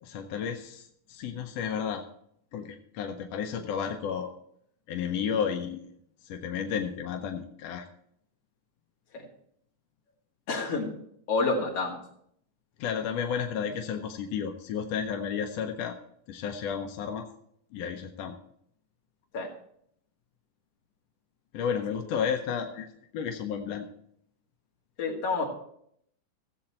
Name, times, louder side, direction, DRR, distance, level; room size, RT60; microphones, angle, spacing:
voice 1, 0.0-2.0 2.5-4.3 4.9-5.9 6.2-7.9 12.8-16.0 16.3-17.3 17.7-18.4 21.5-23.9, left 7 dB, 75° left, 4 dB, 1.6 m, -32 dB
voice 2, 10.5-10.9 11.3-12.0 19.3-19.5 21.7-21.8 25.0-25.5, left 3 dB, 55° left, -1 dB, 3.0 m, -28 dB
16.0 x 7.8 x 4.2 m, 0.70 s
omnidirectional pair, 3.6 m